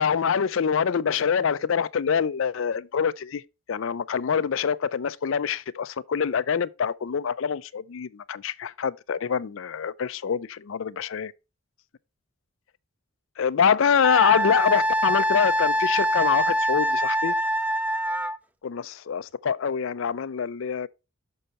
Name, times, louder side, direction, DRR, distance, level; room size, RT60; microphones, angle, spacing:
voice 1, 0.0-3.4 3.7-11.3 13.4-17.3 18.6-20.9, left 7 dB, 65° left, 0.4 m, -25 dB
Wind instrument woodwind instrument, 14.0-18.4, equal, 5° right, 0.4 m, -24 dB
6.6 x 5.6 x 4.1 m
head